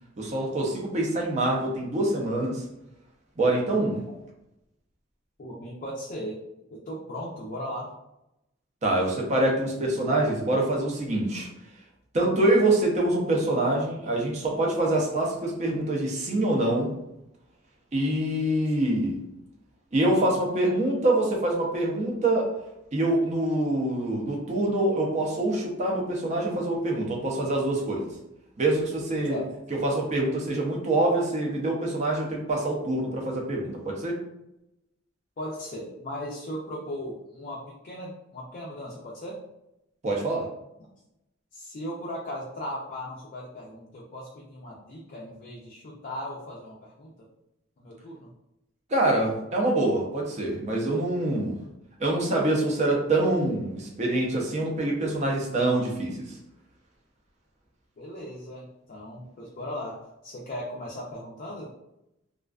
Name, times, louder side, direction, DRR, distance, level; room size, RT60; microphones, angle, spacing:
voice 1, 0.2-2.6 3.4-4.0 8.8-11.5 12.1-16.9 17.9-19.2 19.9-22.5 22.9-28.0 28.6-29.4 29.8-34.2 40.0-40.5 48.9-51.6 52.0-56.2, right 1 dB, 35° right, -1 dB, 0.5 m, -25 dB
voice 2, 5.4-6.4 6.7-7.9 29.2-29.5 35.4-39.4 41.5-47.1 47.8-48.3 58.0-61.7, equal, 45° left, -3 dB, 0.4 m, -37 dB
2.4 x 2.3 x 2.3 m, 0.86 s
head